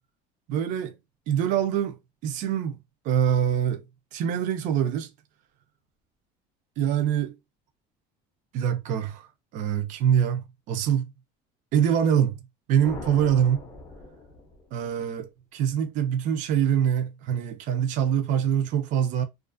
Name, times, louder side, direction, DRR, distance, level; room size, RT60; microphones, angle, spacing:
voice 1, 0.5-0.9 1.3-2.8 3.0-3.8 4.1-5.1 6.8-7.3 8.5-9.3 9.5-11.0 11.7-12.4 12.7-13.6 14.7-19.2, right 9 dB, 40° right, 0.4 m, -24 dB
sound 1, 12.8-15.0, left 2 dB, 15° left, 0.5 m, -42 dB
2.4 x 2.4 x 2.4 m
cardioid pair, 170°, 20 cm